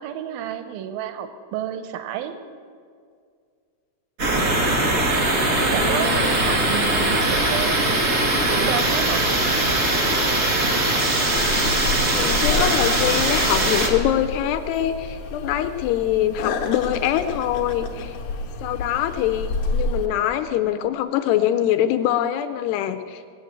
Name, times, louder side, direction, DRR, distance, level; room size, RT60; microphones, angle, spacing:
voice 1, 0.0-2.4 5.7-8.1 8.5-9.3 11.5-11.8, right 10 dB, 85° right, 9 dB, 2.1 m, -31 dB
sound 1, 4.2-13.9, right 1 dB, 55° right, 0.8 m, -21 dB
voice 2, 5.6-6.4 12.1-18.2 18.6-23.2, left 11 dB, 85° left, 9 dB, 2.4 m, -24 dB
sound 2, 11.3-20.1, left 3 dB, 65° left, 1.9 m, -29 dB
19.0 x 8.0 x 7.8 m, 2.1 s
omnidirectional pair, 4.9 m